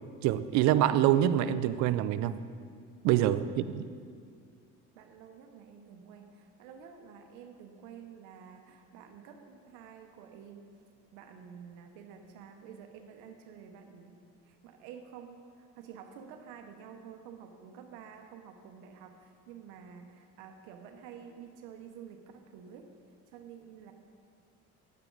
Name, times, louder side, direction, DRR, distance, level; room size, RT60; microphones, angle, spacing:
voice 1, 0.2-2.4 3.0-3.8, right 12 dB, 70° right, 14 dB, 0.5 m, -25 dB
voice 2, 3.4-3.7 4.9-10.7 11.1-22.9 23.3-23.9, right 7 dB, 85° right, 5 dB, 0.9 m, -50 dB
10.5 x 9.2 x 3.9 m, 2.2 s
cardioid pair, 110°, 30 cm